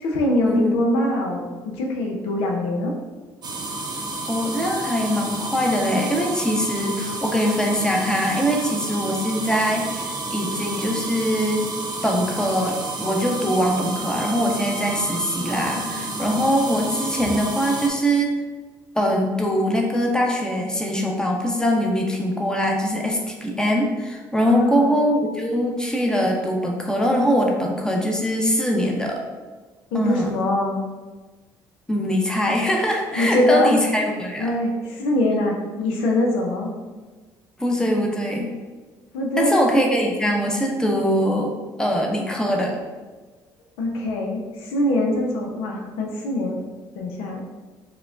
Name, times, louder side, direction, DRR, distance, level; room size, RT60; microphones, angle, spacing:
voice 1, 0.0-2.9 15.7-16.2 17.2-17.3 24.5-24.9 29.9-30.8 33.1-33.8 34.4-36.7 39.1-39.6 43.8-46.6 47.0-47.4, left 1 dB, 80° left, 0 dB, 0.5 m, -23 dB
sound 1, 3.4-17.9, right 2 dB, 50° right, 0.6 m, -31 dB
voice 2, 4.3-11.7 12.0-18.3 18.9-29.2 29.9-30.3 31.9-34.5 37.6-38.5 39.4-41.5 41.8-42.8, equal, 5° left, 0 dB, 0.7 m, -22 dB
4.7 x 2.2 x 2.4 m, 1.3 s
supercardioid pair, 65°, 9 cm